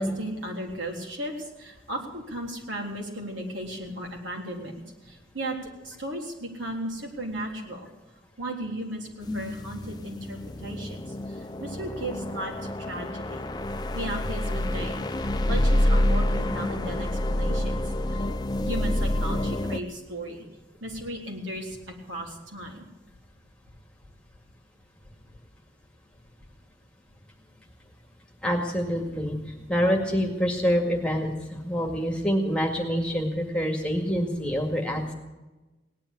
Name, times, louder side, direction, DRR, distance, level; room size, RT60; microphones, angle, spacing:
voice 1, 0.0-5.6 5.8-7.9 8.4-13.4 13.9-15.1 15.5-18.3 18.6-20.5 20.8-22.9, right 1 dB, 80° right, 0 dB, 3.6 m, -36 dB
sound 1, 9.2-19.8, left 1 dB, 20° left, 0.6 m, -27 dB
voice 2, 28.4-29.4 29.7-35.1, equal, 5° left, 1 dB, 2.1 m, -26 dB
18.0 x 10.5 x 7.1 m, 1.1 s
head